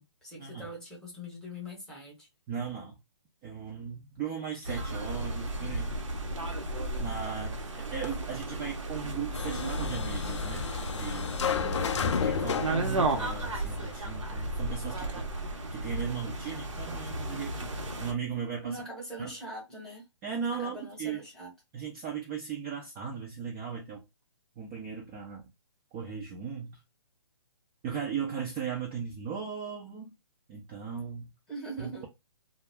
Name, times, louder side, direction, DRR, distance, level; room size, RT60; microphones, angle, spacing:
voice 1, 0.0-2.3 11.5-12.1 18.6-20.0 20.6-21.5 31.5-32.1, right 1 dB, 5° left, 1.0 m, -42 dB
voice 2, 2.5-3.0 3.4-5.9 6.6-6.7 7.0-10.7 10.9-11.3 11.9-17.7 18.0-18.8 19.2-19.3 20.2-21.2 21.7-24.0 24.6-25.5 25.9-26.8 27.8-30.1 30.5-31.3 31.8-32.1, right 6 dB, 20° right, 0.5 m, -37 dB
sound 1, 4.6-18.1, right 2 dB, 90° right, 0.8 m, -34 dB
sound 2, 9.3-14.5, left 6 dB, 70° left, 0.4 m, -33 dB
2.3 x 2.0 x 3.4 m
hypercardioid pair, 145°, 16 cm